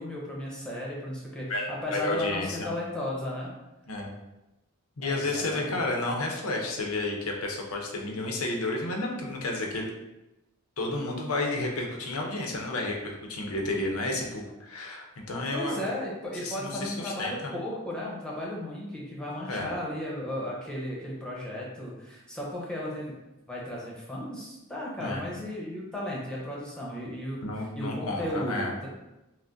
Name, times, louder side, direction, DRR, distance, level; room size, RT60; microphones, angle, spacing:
voice 1, 0.0-3.5 5.0-5.8 15.5-23.2 23.5-27.4 27.7-28.9, left 1 dB, 5° left, -5 dB, 0.9 m, -35 dB
voice 2, 1.5-2.7 3.9-4.1 5.0-9.9 10.8-15.9 16.4-17.5 19.4-19.7 25.0-25.2 27.4-28.7, left 2 dB, 70° left, 1 dB, 0.7 m, -31 dB
5.7 x 2.1 x 2.6 m, 0.97 s
head